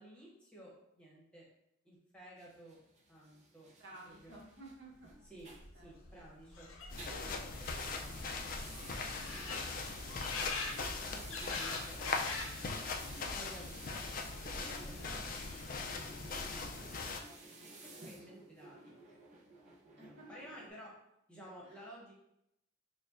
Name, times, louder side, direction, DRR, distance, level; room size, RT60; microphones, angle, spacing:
voice 1, 0.0-1.4 1.8-2.8 3.1-3.7 4.1-4.4 5.2-5.5 5.8-6.7 7.1-8.2 9.2-9.8 10.7-12.1 12.4-12.5 13.3-14.1 14.4-16.2 17.8-18.9 19.8-20.9 21.3-22.1, right 1 dB, 5° left, -5 dB, 1.0 m, -54 dB
sound 1, 2.4-6.6 6.9-20.7, right 3 dB, 35° right, 0.6 m, -54 dB
voice 2, 3.8-5.1 5.7-5.9 13.1-13.4 15.2-15.3 17.2-17.7 20.0-20.3 21.6-21.8, right 2 dB, 60° right, -3 dB, 1.1 m, -54 dB
sound 2, 5.1-5.2 5.4-12.7 13.0-13.6 14.5-15.8 16.2-16.8, left 3 dB, 85° left, 0.7 m, -45 dB
sound 3, 6.9-17.2, left 4 dB, 45° left, 0.4 m, -41 dB
6.5 x 2.2 x 2.5 m, 0.80 s
head